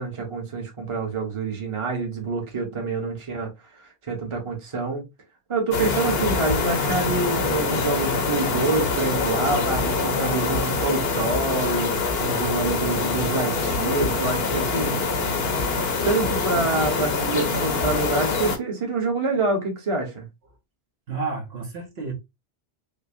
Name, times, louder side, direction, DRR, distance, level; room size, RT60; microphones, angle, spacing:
voice 1, 0.0-5.0 5.5-11.9 12.2-15.0 16.0-20.3, right 3 dB, 30° right, 1.0 m, -26 dB
sound 1, 5.7-18.6, left 4 dB, 60° left, 1.0 m, -25 dB
voice 2, 21.1-22.1, right 4 dB, 65° right, 1.1 m, -31 dB
5.1 x 2.1 x 2.6 m
omnidirectional pair, 1.2 m